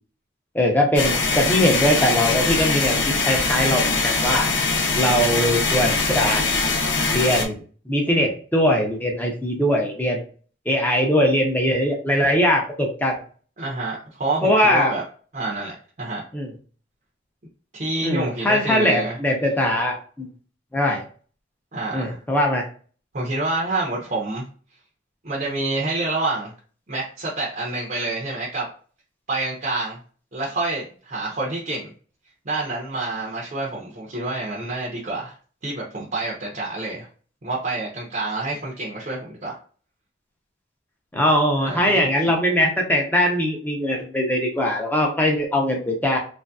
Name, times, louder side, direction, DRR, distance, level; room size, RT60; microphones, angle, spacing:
voice 1, 0.5-4.5 4.9-6.4 7.1-7.5 7.9-10.2 10.7-13.1 14.4-14.9 16.3-16.5 18.0-20.3 20.7-21.0 21.9-22.6 41.1-46.2, equal, 10° left, 0 dB, 0.6 m, -21 dB
sound 1, 1.0-7.5, left 3 dB, 65° left, 0.5 m, -22 dB
voice 2, 13.6-15.0 15.3-16.2 17.7-19.2 21.7-22.2 23.1-24.4 25.2-26.5 26.9-28.7 29.3-30.0 30.3-31.9 32.4-35.3 35.6-37.1 37.4-39.6 41.6-42.1, right 2 dB, 40° right, -4 dB, 0.6 m, -27 dB
3.1 x 2.6 x 2.3 m, 0.41 s
head